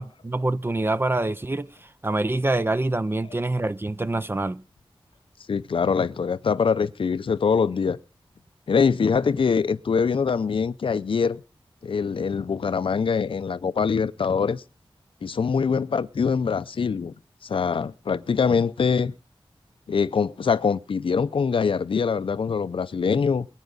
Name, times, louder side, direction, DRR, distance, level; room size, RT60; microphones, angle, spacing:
voice 1, 0.0-4.6, right 2 dB, 25° right, 0.6 m, -26 dB
voice 2, 5.5-8.0 8.7-11.4 11.8-14.6 15.2-17.1 17.4-19.1 19.9-23.5, left 5 dB, 70° left, 0.6 m, -23 dB
21.0 x 9.2 x 4.0 m
wide cardioid pair, 105°, 9 cm